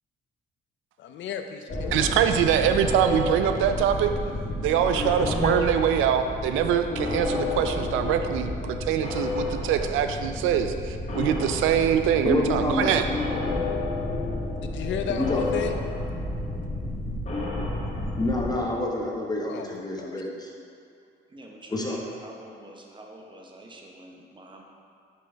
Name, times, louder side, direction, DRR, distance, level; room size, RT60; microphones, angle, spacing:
voice 1, 1.0-2.3 14.6-15.8 19.5-20.2, left 7 dB, 70° left, 6 dB, 0.5 m, -33 dB
sound 1, 1.7-18.5, left 2 dB, 35° left, 1.1 m, -31 dB
voice 2, 1.9-4.1 4.6-8.5 8.9-13.0, right 9 dB, 85° right, 8 dB, 0.4 m, -23 dB
voice 3, 5.2-5.6 12.2-13.0 15.2-15.5 18.2-20.5 21.7-22.0, left 2 dB, 20° left, -2 dB, 0.8 m, -27 dB
voice 4, 21.3-24.6, right 1 dB, 25° right, 1 dB, 0.8 m, -46 dB
5.5 x 5.1 x 3.3 m, 2.4 s
cardioid pair, 90°, 20 cm